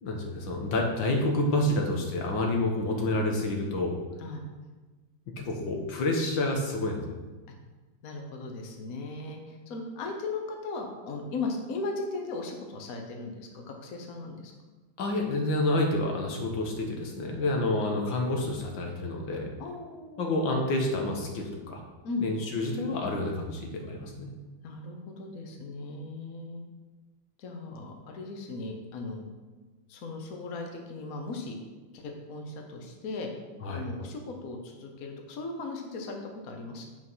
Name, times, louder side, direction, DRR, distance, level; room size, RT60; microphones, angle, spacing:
voice 1, 0.0-3.9 5.4-7.1 15.0-19.5 20.2-21.8 22.2-24.3 33.6-33.9, left 2 dB, 80° left, 1 dB, 1.9 m, -28 dB
voice 2, 8.0-14.5 17.6-17.7 19.6-20.3 22.0-22.3 24.6-26.6 27.4-29.3 29.9-31.6 31.9-33.3 33.7-36.9, left 3 dB, 50° left, 2 dB, 1.4 m, -37 dB
8.4 x 5.1 x 5.6 m, 1.2 s
omnidirectional pair, 2.1 m